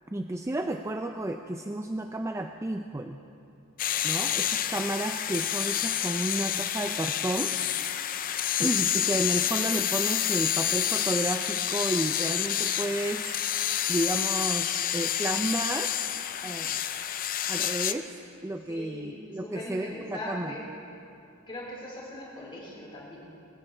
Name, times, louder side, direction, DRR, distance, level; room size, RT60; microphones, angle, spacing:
voice 1, 0.1-3.2 4.0-7.5 8.6-13.3 13.9-15.9 16.4-16.8 17.5-18.1 18.4-20.6, right 1 dB, 15° right, 5 dB, 0.4 m, -32 dB
sound 1, 3.8-17.9, left 10 dB, 40° left, 0.5 m, -29 dB
voice 2, 18.7-20.7 21.5-23.2, left 1 dB, 25° left, -6 dB, 4.3 m, -40 dB
21.0 x 16.0 x 3.3 m, 2.6 s
head